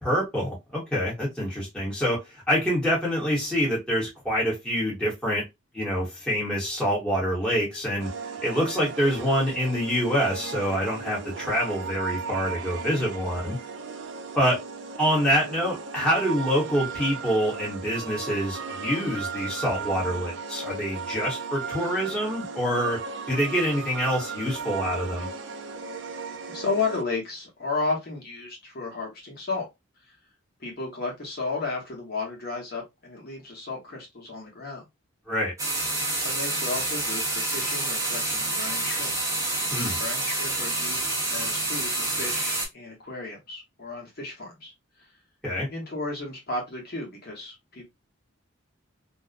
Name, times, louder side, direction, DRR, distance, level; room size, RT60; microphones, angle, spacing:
voice 1, 0.0-5.4 5.7-8.1 8.4-13.6 14.4-14.6 15.0-23.0 23.3-25.3 35.3-35.5 39.7-40.0 45.4-45.7, equal, 5° left, 1.0 m, -26 dB
sound 1, 8.0-27.0, right 5 dB, 60° right, 0.4 m, -36 dB
voice 2, 26.5-29.7 30.6-34.8 36.2-39.1 40.0-41.0 41.3-45.1 45.7-47.9, left 3 dB, 50° left, 1.0 m, -33 dB
sound 2, 35.6-42.7, right 2 dB, 15° right, 0.6 m, -28 dB
2.5 x 2.1 x 2.4 m
head